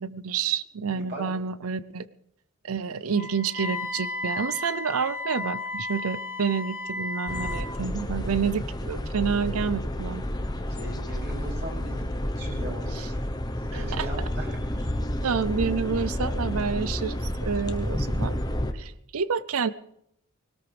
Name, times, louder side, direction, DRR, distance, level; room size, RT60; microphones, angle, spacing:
voice 1, 0.0-2.1 2.6-10.2 12.9-13.1 13.7-14.1 15.2-18.4 18.7-19.7, right 6 dB, 75° right, 17 dB, 0.6 m, -29 dB
voice 2, 0.9-1.2 10.8-12.0 12.3-13.2 13.6-14.6, right 1 dB, 50° right, -2 dB, 6.3 m, -39 dB
Wind instrument woodwind instrument, 3.1-7.7, left 2 dB, 35° left, 1.7 m, -34 dB
sound 1, 7.3-18.7, left 1 dB, 20° left, 0.9 m, -30 dB
21.0 x 18.5 x 3.4 m, 0.74 s
head